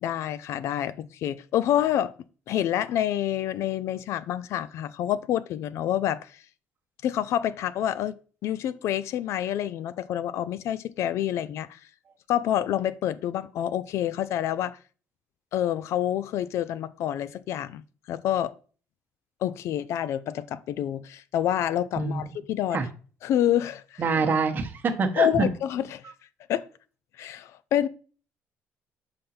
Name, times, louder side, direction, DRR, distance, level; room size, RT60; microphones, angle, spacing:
voice 1, 0.0-2.1 2.5-6.4 7.0-8.2 8.4-11.8 12.3-14.8 15.5-17.8 18.1-18.5 19.4-22.8 23.2-24.0 25.2-26.0 26.5-26.7 27.2-27.9, left 11 dB, 70° left, 0.4 m, -27 dB
voice 2, 22.0-22.3 22.7-22.9 24.0-25.5, right 4 dB, 40° right, 1.1 m, -25 dB
5.4 x 5.2 x 4.3 m
cardioid pair, 125°, 5 cm